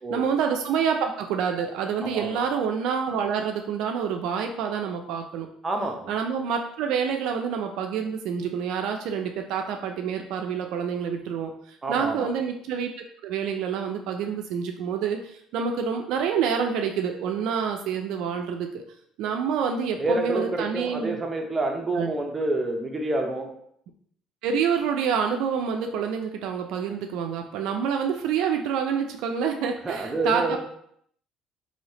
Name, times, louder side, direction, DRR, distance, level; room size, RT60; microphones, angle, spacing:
voice 1, 0.1-5.5 6.1-12.9 13.2-18.8 19.2-21.2 21.9-22.1 24.4-30.6, right 7 dB, 75° right, 4 dB, 0.3 m, -27 dB
voice 2, 5.6-6.1 11.8-12.3 20.0-23.5 29.8-30.6, right 2 dB, 25° right, 2 dB, 0.6 m, -28 dB
3.1 x 2.7 x 2.9 m, 0.69 s
supercardioid pair, 90°, 0 cm